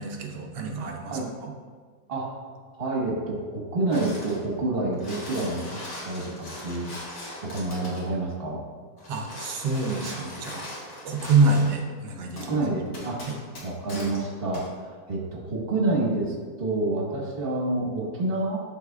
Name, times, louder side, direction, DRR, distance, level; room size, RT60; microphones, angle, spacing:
voice 1, 0.0-1.5 9.1-10.7 11.0-12.6 13.3-13.4, right 3 dB, 85° right, 1 dB, 1.4 m, -26 dB
voice 2, 2.8-5.6 6.0-7.0 7.4-8.6 12.4-13.2 13.6-18.6, right 2 dB, 35° right, -3 dB, 1.5 m, -28 dB
sound 1, 3.9-4.4 4.8-8.1 9.0-11.8 12.4-12.5 12.9-14.2 14.5-14.7, left 1 dB, 60° left, 1.9 m, -40 dB
11.5 x 4.1 x 2.4 m, 1.6 s
omnidirectional pair, 1.8 m